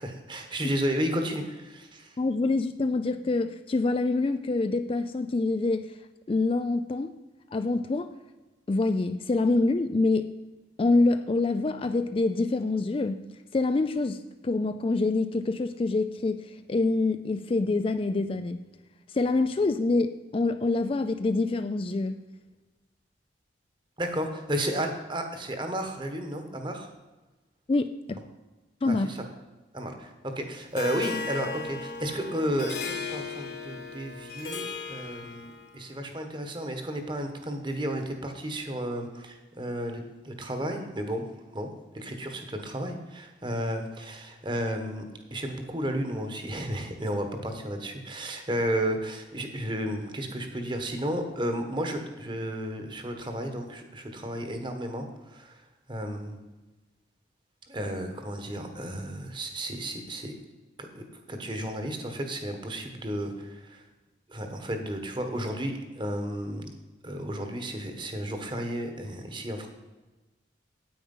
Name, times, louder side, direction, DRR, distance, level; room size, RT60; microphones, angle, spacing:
voice 1, 0.0-2.2 24.0-26.9 28.9-29.2 29.7-41.3 41.5-45.0 45.3-55.6 55.9-56.4 57.7-60.3 60.8-63.8 64.3-66.7 67.0-69.7, equal, 25° right, 5 dB, 1.3 m, -33 dB
voice 2, 2.2-5.9 6.3-7.1 7.5-8.1 8.7-10.3 10.8-13.2 13.5-18.6 19.1-22.2 27.7-28.2 28.8-29.1, left 3 dB, 30° left, 9 dB, 0.3 m, -26 dB
Harp, 30.8-35.8, left 4 dB, 55° left, 1.5 m, -36 dB
9.3 x 8.8 x 5.5 m, 1.2 s
head